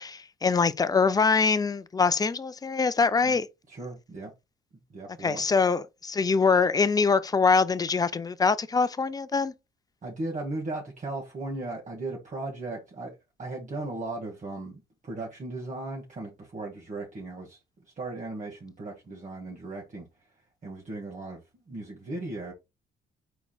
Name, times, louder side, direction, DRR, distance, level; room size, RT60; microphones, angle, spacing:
voice 1, 0.0-3.5 5.2-9.5, left 5 dB, 20° left, 0.5 m, -24 dB
voice 2, 3.7-4.3 4.9-5.4 10.0-17.6 18.0-20.1 20.6-22.5, right 2 dB, 40° right, 1.5 m, -37 dB
4.7 x 4.1 x 2.3 m
cardioid pair, 90°, 20 cm